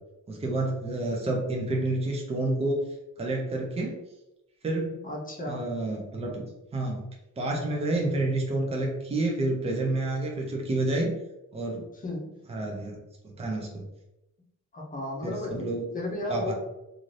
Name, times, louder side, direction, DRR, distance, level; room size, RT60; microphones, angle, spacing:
voice 1, 0.3-2.8 3.2-4.0 4.6-5.0 5.5-6.4 6.7-7.1 7.4-11.1 11.5-11.9 12.5-13.0 13.4-13.8 15.2-15.8 16.3-16.5, right 2 dB, 20° right, 0 dB, 0.5 m, -29 dB
voice 2, 5.0-5.7 11.9-12.4 14.7-16.5, left 1 dB, 25° left, -1 dB, 0.7 m, -34 dB
2.7 x 2.5 x 3.1 m, 0.92 s
wide cardioid pair, 175°, 31 cm